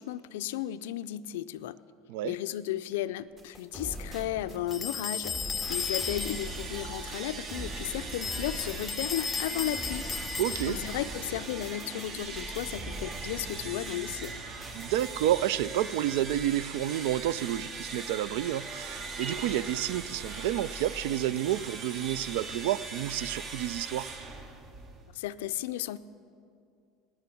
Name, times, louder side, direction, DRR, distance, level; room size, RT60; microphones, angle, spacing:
voice 1, 0.0-1.8 2.2-10.0 10.7-14.4 25.1-26.0, left 13 dB, 85° left, 14 dB, 0.4 m, -34 dB
sound 1, 3.4-14.3 14.6-15.2, right 1 dB, 25° right, 1.6 m, -43 dB
sound 2, 4.7-6.7 8.1-11.0, left 6 dB, 25° left, 0.7 m, -35 dB
sound 3, 5.7-25.2, right 3 dB, 45° right, 1.3 m, -40 dB
voice 2, 10.4-10.8 14.7-24.1, right 12 dB, 80° right, 19 dB, 0.3 m, -30 dB
10.5 x 9.4 x 8.4 m, 2.4 s
supercardioid pair, 100°, 0 cm